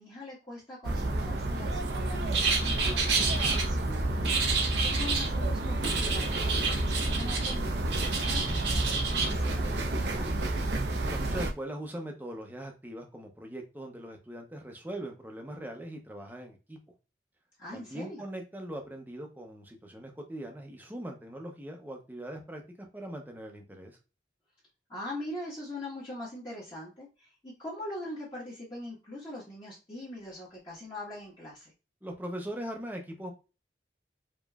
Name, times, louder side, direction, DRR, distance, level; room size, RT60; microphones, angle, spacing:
voice 1, 0.0-10.3 17.6-18.2 24.9-31.7, left 1 dB, 25° left, -8 dB, 1.4 m, -42 dB
sound 1, 0.8-11.5, right 1 dB, 75° right, 0.7 m, -30 dB
sound 2, 2.3-3.6 4.2-5.3 5.8-7.6 7.9-9.3, right 5 dB, 90° right, 1.5 m, -30 dB
voice 2, 11.0-16.8 17.7-22.6 22.9-24.0 32.0-33.3, right 1 dB, 10° right, 2 dB, 0.8 m, -41 dB
5.0 x 3.0 x 2.4 m, 0.30 s
head